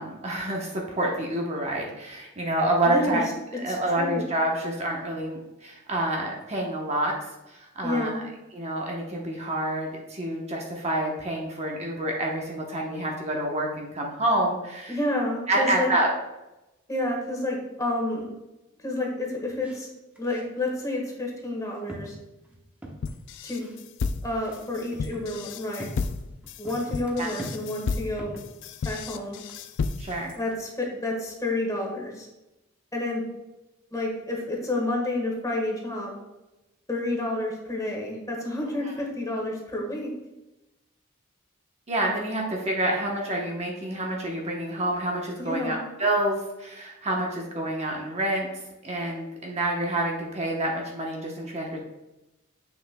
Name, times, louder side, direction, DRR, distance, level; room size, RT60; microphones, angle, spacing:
voice 1, 0.0-3.3 3.6-7.2 7.5-8.2 8.5-15.0 15.5-16.1 27.2-27.3 30.0-30.4 38.8-38.9 41.9-48.5 48.8-51.8, right 1 dB, 30° right, -1 dB, 0.9 m, -28 dB
voice 2, 2.8-3.2 3.7-4.2 7.8-8.2 14.9-15.9 16.9-18.3 18.8-19.9 20.2-22.1 23.4-23.7 24.2-25.9 26.6-28.4 28.8-29.4 30.4-32.3 32.9-33.2 33.9-36.1 36.9-40.1 45.4-45.8, left 1 dB, 15° left, -1 dB, 1.5 m, -29 dB
sound 1, 19.6-19.8 20.2-20.7 21.4-21.5 21.9-23.2 23.6-23.8 24.4-28.5 29.4-30.2 30.5-30.6, right 1 dB, 5° right, 1.0 m, -43 dB
sound 2, 23.0-30.3, left 4 dB, 60° left, 0.4 m, -32 dB
7.6 x 6.2 x 2.2 m, 0.98 s
head